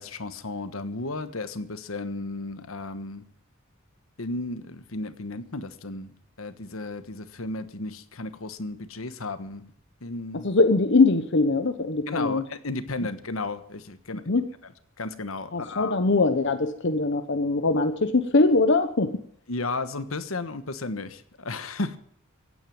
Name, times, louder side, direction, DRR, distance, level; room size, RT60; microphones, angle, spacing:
voice 1, 0.0-3.2 4.2-9.7 10.0-10.5 12.1-14.3 14.6-14.7 15.0-16.0 19.5-22.0, left 2 dB, 80° left, 12 dB, 1.3 m, -34 dB
voice 2, 10.4-12.4 14.3-14.4 15.5-19.1, left 3 dB, 60° left, 9 dB, 0.9 m, -22 dB
16.0 x 9.3 x 9.4 m, 0.65 s
head